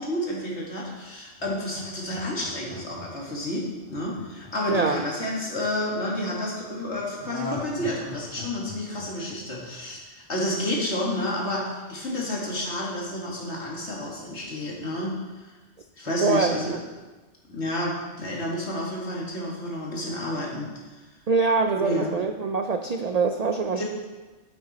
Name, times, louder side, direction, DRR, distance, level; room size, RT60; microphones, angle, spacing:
voice 1, 0.0-15.5 16.0-16.8 17.5-20.7 21.8-22.1 23.8-23.9, left 1 dB, 65° left, -3 dB, 2.3 m, -30 dB
Laughter, 1.4-5.6 7.2-10.2 10.5-10.6, left 1 dB, 20° right, 1.6 m, -39 dB
voice 2, 4.7-5.0 16.2-16.8 21.3-23.8, right 4 dB, 60° right, 6 dB, 0.4 m, -24 dB
9.0 x 8.1 x 4.2 m, 1.2 s
omnidirectional pair, 1.2 m